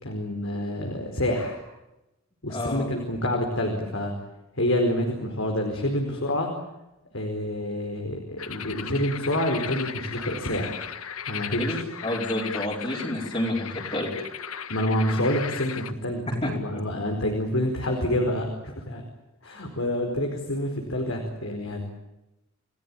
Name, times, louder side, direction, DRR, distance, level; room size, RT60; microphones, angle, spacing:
voice 1, 0.0-1.6 2.4-4.1 4.5-6.5 7.1-10.8 11.3-11.8 14.7-19.0 19.4-21.9, left 1 dB, 65° left, 3 dB, 4.8 m, -27 dB
voice 2, 2.5-2.9 11.6-14.1 16.4-16.5, left 1 dB, 25° left, -3 dB, 4.9 m, -29 dB
sound 1, 8.4-15.9, left 8 dB, 85° left, 1.5 m, -36 dB
29.5 x 19.0 x 8.8 m, 0.95 s
head